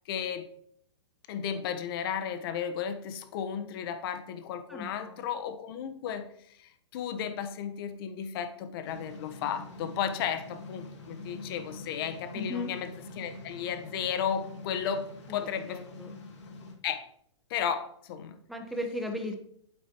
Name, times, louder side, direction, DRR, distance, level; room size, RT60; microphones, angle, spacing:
voice 1, 0.1-0.5 1.3-12.9 13.2-15.8 16.8-17.0 17.5-18.3, left 8 dB, 50° left, 8 dB, 1.1 m, -34 dB
voice 2, 4.7-5.3 12.3-12.7 15.3-15.4 15.6-16.2 18.5-19.4, left 1 dB, ahead, 3 dB, 1.1 m, -36 dB
sound 1, 8.8-16.7, left 2 dB, 75° left, 2.2 m, -45 dB
8.9 x 7.9 x 3.0 m, 0.69 s
hypercardioid pair, 125°, 15 cm